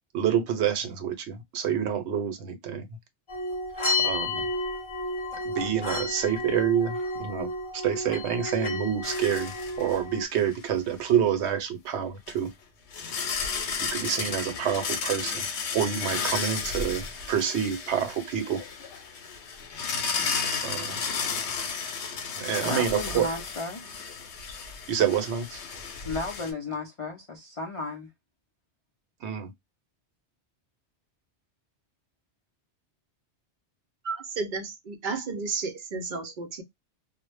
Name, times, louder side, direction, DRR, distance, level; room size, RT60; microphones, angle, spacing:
voice 1, 0.1-2.8 4.0-4.5 5.4-9.5 9.8-12.5 13.8-15.5 15.7-18.6 20.6-21.0 22.4-23.3 24.9-25.6 29.2-29.5, right 8 dB, 80° right, 0.9 m, -28 dB
sound 1, 3.3-10.3, left 2 dB, 30° left, 0.7 m, -31 dB
sound 2, 9.0-10.0 10.4-10.5 12.3-12.4 12.9-26.5, left 5 dB, 85° left, 0.9 m, -33 dB
voice 2, 22.6-23.8 26.0-28.1, left 3 dB, 55° left, 0.3 m, -34 dB
voice 3, 34.0-36.6, right 4 dB, 55° right, 0.6 m, -32 dB
2.0 x 2.0 x 3.1 m
omnidirectional pair, 1.2 m